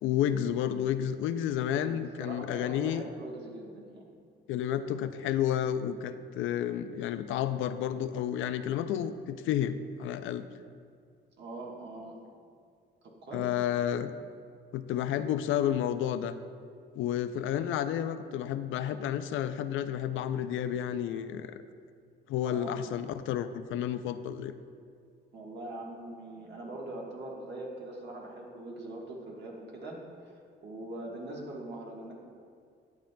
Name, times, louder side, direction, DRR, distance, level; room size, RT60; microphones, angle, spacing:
voice 1, 0.0-3.0 4.5-10.5 13.3-14.1 14.7-16.3 17.0-21.6 22.3-24.5, left 10 dB, 80° left, 11 dB, 0.4 m, -31 dB
voice 2, 1.8-4.0 11.4-12.2 13.2-13.5 22.5-22.9 25.3-30.0 30.2-32.1, right 1 dB, 60° right, -2 dB, 1.3 m, -42 dB
11.5 x 7.2 x 2.2 m, 2.2 s
cardioid pair, 90°, 20 cm